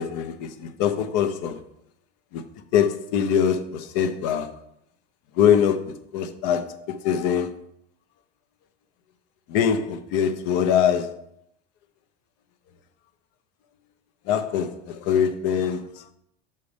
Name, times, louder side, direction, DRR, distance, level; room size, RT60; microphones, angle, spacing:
voice 1, 0.0-1.6 2.3-2.5 2.7-4.6 5.3-7.5 9.5-11.2 14.3-16.0, left 8 dB, 55° left, 0.8 m, -23 dB
6.6 x 4.1 x 5.0 m
supercardioid pair, 145°, 30 cm